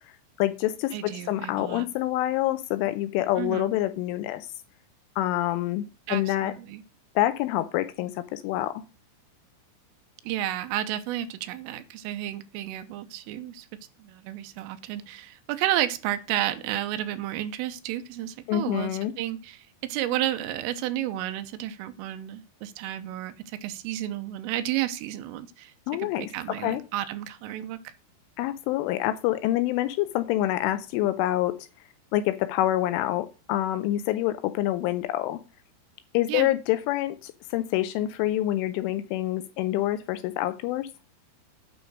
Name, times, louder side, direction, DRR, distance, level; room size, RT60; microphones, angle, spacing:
voice 1, 0.4-4.5 5.2-6.5 7.2-8.8 18.5-19.1 25.9-26.8 28.4-31.7 32.1-35.4 36.1-40.9, left 14 dB, 80° left, 3.0 m, -27 dB
voice 2, 0.9-1.9 3.4-3.7 6.1-6.8 10.2-13.7 14.0-23.3 23.6-25.7 26.0-27.9 36.3-36.5, right 13 dB, 90° right, 3.4 m, -32 dB
9.4 x 6.3 x 6.3 m
omnidirectional pair, 5.8 m